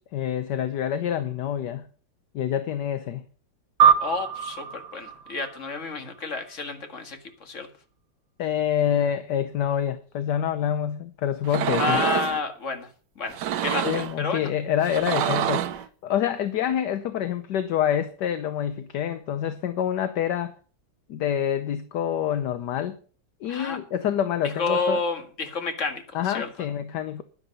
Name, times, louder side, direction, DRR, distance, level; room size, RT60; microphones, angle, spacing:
voice 1, 0.1-1.9 2.3-3.2 8.4-12.0 13.8-20.6 21.1-23.0 23.4-25.0 26.1-27.2, left 9 dB, 65° left, 1.3 m, -27 dB
sound 1, 3.8-6.5, right 7 dB, 90° right, 1.9 m, -24 dB
voice 2, 4.0-7.7 11.8-12.9 13.2-14.5 23.5-23.8 24.4-26.5, left 4 dB, 40° left, 2.1 m, -30 dB
sound 2, 11.4-12.4 13.3-14.2 14.8-15.8, right 11 dB, 70° right, 1.3 m, -27 dB
11.0 x 11.0 x 5.3 m
omnidirectional pair, 2.1 m